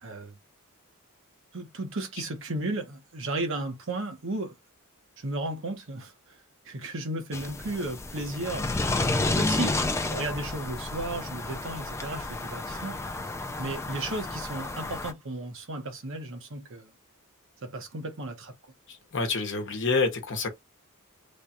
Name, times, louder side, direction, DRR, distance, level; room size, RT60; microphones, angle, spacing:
voice 1, 0.0-0.3 1.5-4.6 5.2-6.1 6.6-13.0 13.6-16.9 17.6-18.7, right 2 dB, 65° right, 1.1 m, -34 dB
sound 1, 7.3-15.1, left 2 dB, 15° left, 0.3 m, -31 dB
voice 2, 18.9-20.5, left 4 dB, 60° left, 0.9 m, -28 dB
3.3 x 2.3 x 4.1 m
head